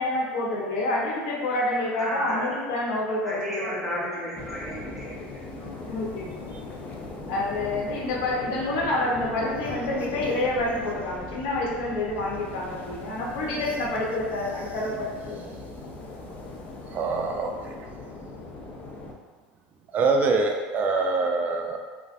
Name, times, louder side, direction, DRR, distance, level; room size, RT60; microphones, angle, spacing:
voice 1, 0.0-4.4 5.9-6.4 7.3-15.5, left 2 dB, 75° left, -3 dB, 0.8 m, -28 dB
voice 2, 2.0-2.5 3.2-5.8, equal, ahead, -8 dB, 1.0 m, -33 dB
sound 1, 4.4-19.1, left 2 dB, 35° left, 0.4 m, -39 dB
voice 3, 16.9-17.8 19.9-21.8, right 3 dB, 35° right, 3 dB, 0.4 m, -24 dB
3.1 x 2.4 x 2.5 m, 1.5 s
supercardioid pair, 115°, 5 cm